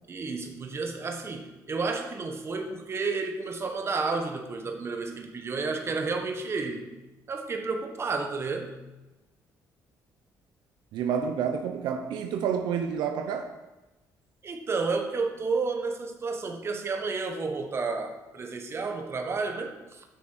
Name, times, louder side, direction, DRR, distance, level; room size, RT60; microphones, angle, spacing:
voice 1, 0.1-6.9 7.3-8.7 14.4-20.0, right 4 dB, 35° right, 4 dB, 1.4 m, -31 dB
voice 2, 10.9-13.6, right 7 dB, 85° right, 6 dB, 0.8 m, -29 dB
9.2 x 6.2 x 6.4 m, 1.1 s
cardioid pair, 105°, 7 cm